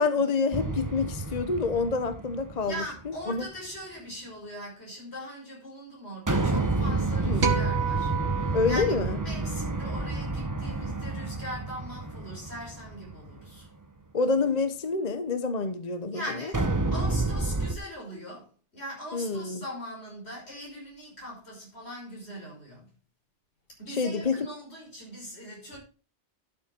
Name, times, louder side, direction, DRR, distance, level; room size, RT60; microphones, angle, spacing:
voice 1, 0.0-2.8 3.3-3.5 7.3-7.5 8.5-9.2 14.1-16.2 19.1-19.6 23.9-24.4, left 4 dB, 40° left, 1.1 m, -27 dB
sound 1, 0.5-3.1 6.3-13.5 16.5-17.7, right 3 dB, 20° right, 1.0 m, -29 dB
voice 2, 2.6-13.7 16.1-22.9 23.8-25.8, equal, 65° left, 6.1 m, -41 dB
sound 2, 7.4-9.9, right 6 dB, 80° right, 2.1 m, -31 dB
12.5 x 7.6 x 4.4 m
omnidirectional pair, 1.2 m